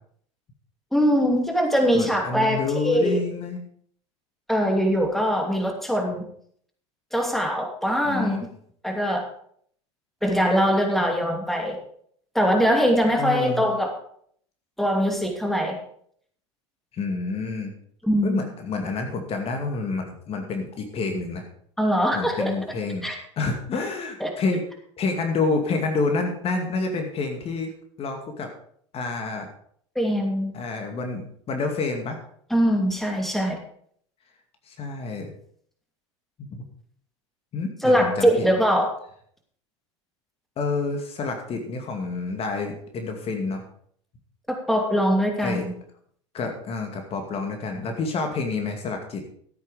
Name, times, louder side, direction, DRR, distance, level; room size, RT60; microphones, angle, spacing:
voice 1, 0.9-3.2 4.5-6.2 7.1-8.4 8.8-9.2 10.2-11.8 12.3-13.9 14.8-15.8 18.0-18.4 21.8-22.5 23.0-23.2 24.2-24.3 29.9-30.5 32.5-33.6 37.8-38.9 44.5-45.7, equal, ahead, 2 dB, 2.8 m, -22 dB
voice 2, 1.9-3.6 8.1-8.4 13.2-13.6 16.9-17.8 18.2-21.4 22.1-23.1 23.4-24.6 25.0-27.7 28.0-28.5 28.9-29.5 30.5-32.2 34.7-35.3 36.5-36.6 37.5-38.5 40.6-43.6 45.4-45.6 46.3-49.2, left 3 dB, 40° left, 4 dB, 2.4 m, -28 dB
14.0 x 8.5 x 5.1 m, 0.62 s
hypercardioid pair, 85°, 16 cm